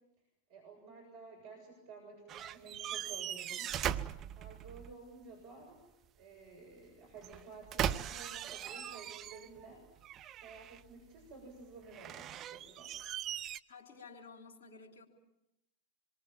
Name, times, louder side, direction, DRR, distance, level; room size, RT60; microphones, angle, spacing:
voice 1, 0.5-3.7 4.4-5.8 6.2-9.9 10.4-13.0, right 4 dB, 50° right, 0 dB, 7.3 m, -53 dB
sound 1, 2.3-4.9 7.2-9.7 10.0-10.9 11.9-13.6, right 10 dB, 30° right, 0.9 m, -39 dB
voice 2, 13.7-15.1, left 4 dB, 50° left, -1 dB, 4.1 m, -53 dB
26.5 x 23.0 x 7.4 m, 0.87 s
figure-of-eight pair, 90°, 0 cm